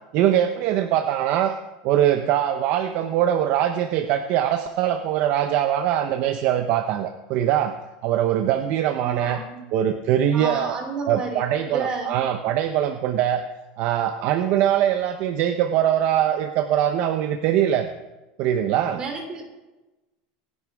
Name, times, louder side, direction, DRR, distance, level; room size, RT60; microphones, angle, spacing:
voice 1, 0.1-1.5 1.8-7.7 8.0-9.4 9.7-10.7 11.1-13.4 13.8-17.9 18.4-19.0, right 11 dB, 45° right, 7 dB, 0.8 m, -22 dB
voice 2, 9.0-9.6 10.3-11.4 11.7-12.2 18.9-19.4, right 4 dB, 25° right, 3 dB, 2.9 m, -31 dB
24.5 x 11.0 x 3.6 m, 1.1 s
supercardioid pair, 160°, 4 cm